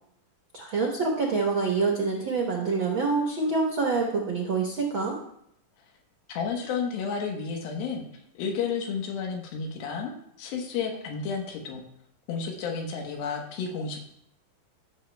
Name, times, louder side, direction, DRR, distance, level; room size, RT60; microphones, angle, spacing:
voice 1, 0.5-5.2, right 4 dB, 65° right, 0 dB, 1.2 m, -26 dB
voice 2, 6.3-8.0 8.3-11.8 12.3-14.0, left 5 dB, 90° left, 2 dB, 3.0 m, -31 dB
16.0 x 7.2 x 2.2 m, 0.73 s
omnidirectional pair, 4.1 m